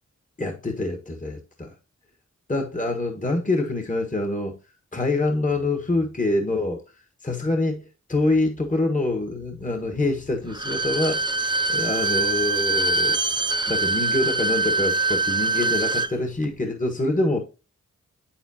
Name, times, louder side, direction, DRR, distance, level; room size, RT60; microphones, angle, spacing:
voice 1, 0.4-1.7 2.5-4.5 4.9-6.8 7.2-11.2 11.7-13.2 13.7-17.4, left 2 dB, 25° left, 1.4 m, -25 dB
Bowed string instrument, 10.5-16.1 16.4-16.5, right 3 dB, 15° right, 0.5 m, -24 dB
8.0 x 7.2 x 2.8 m
cardioid pair, 45°, 31 cm